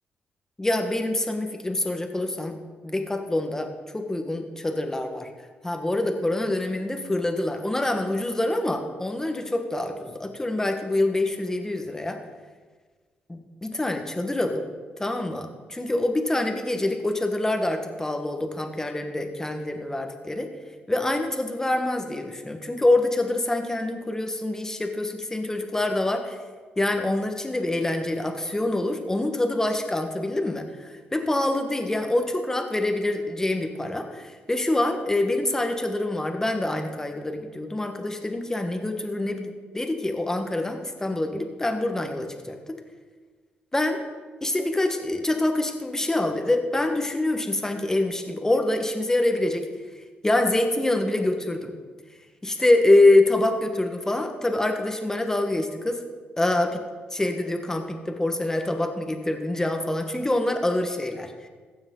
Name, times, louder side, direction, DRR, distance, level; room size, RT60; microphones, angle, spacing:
voice 1, 0.6-5.3 5.6-12.2 13.3-14.6 15.0-20.5 20.9-26.4 26.8-42.6 43.7-44.0 44.4-49.7 50.2-51.7 52.4-56.0 56.4-56.8 57.1-61.5, left 2 dB, 15° left, 5 dB, 1.3 m, -25 dB
15.5 x 7.1 x 3.9 m, 1.4 s
cardioid pair, 70°, 4 cm